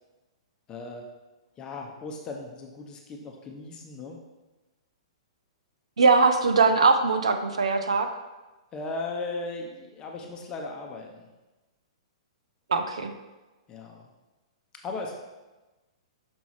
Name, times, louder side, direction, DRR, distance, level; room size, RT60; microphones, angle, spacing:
voice 1, 0.7-1.0 1.6-4.2 8.7-11.3 13.7-14.1 14.8-15.2, left 3 dB, 25° left, 1 dB, 0.7 m, -37 dB
voice 2, 6.0-8.1 12.7-13.1, right 4 dB, 80° right, 7 dB, 0.7 m, -21 dB
6.1 x 5.3 x 3.1 m, 1.1 s
hypercardioid pair, 120°, 3 cm